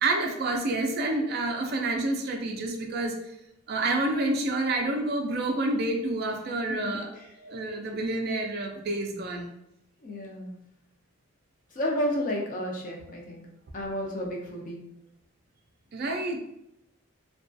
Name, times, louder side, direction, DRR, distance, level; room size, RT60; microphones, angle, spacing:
voice 1, 0.0-3.2 3.7-7.1 7.4-9.5 15.9-16.4, right 2 dB, 45° right, 2 dB, 0.3 m, -28 dB
voice 2, 6.7-7.3 10.0-10.6 11.7-13.4 13.7-14.8, equal, 35° left, -1 dB, 0.4 m, -32 dB
2.3 x 2.2 x 2.5 m, 0.82 s
head